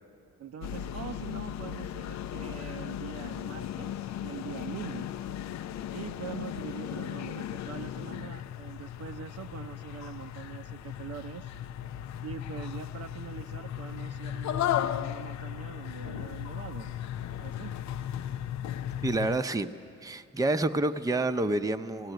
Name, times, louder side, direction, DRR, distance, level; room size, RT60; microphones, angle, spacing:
voice 1, 0.4-5.1 5.9-11.5 12.2-16.9 17.4-17.8, right 9 dB, 55° right, 9 dB, 0.6 m, -43 dB
sound 1, 0.6-19.4, left 10 dB, 65° left, 0.5 m, -36 dB
voice 2, 19.0-19.7 20.0-22.1, right 2 dB, 10° right, 8 dB, 0.7 m, -28 dB
17.5 x 17.5 x 9.2 m, 2.4 s
cardioid pair, 90°, 30 cm